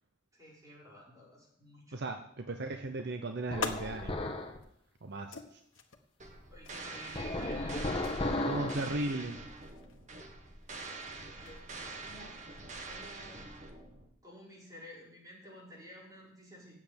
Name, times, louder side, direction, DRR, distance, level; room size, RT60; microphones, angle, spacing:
voice 1, 0.3-2.0 6.5-8.5 8.7-9.3 11.3-12.4 12.8-13.5 14.2-16.8, equal, 20° right, -7 dB, 5.8 m, -52 dB
voice 2, 1.9-4.3 5.0-5.6 8.5-9.4, right 2 dB, 60° right, 6 dB, 0.8 m, -36 dB
sound 1, 2.9-13.3, left 5 dB, 85° left, 1.2 m, -48 dB
sound 2, 3.5-4.6 7.2-8.9, left 2 dB, 30° left, 1.4 m, -34 dB
sound 3, 6.2-14.1, right 3 dB, 40° right, 1.4 m, -46 dB
8.6 x 7.7 x 8.6 m, 0.73 s
head